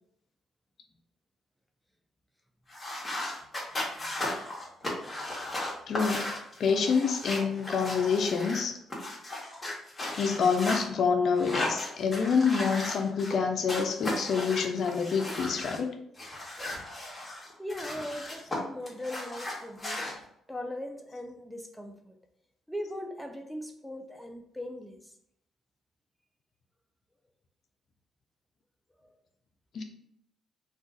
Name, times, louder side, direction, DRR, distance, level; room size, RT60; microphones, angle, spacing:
sound 1, 2.7-10.8 11.3-13.4 13.7-15.8 16.2-18.6 18.9-20.1, left 1 dB, 20° left, 0.9 m, -36 dB
voice 1, 5.9-6.3 6.6-8.8 10.2-15.9 29.7-29.8, left 5 dB, 60° left, 5 dB, 0.4 m, -27 dB
voice 2, 17.6-20.1 20.5-22.1 22.7-25.0, left 1 dB, ahead, 3 dB, 0.4 m, -39 dB
2.4 x 2.3 x 3.7 m, 0.73 s
cardioid pair, 90°, 0 cm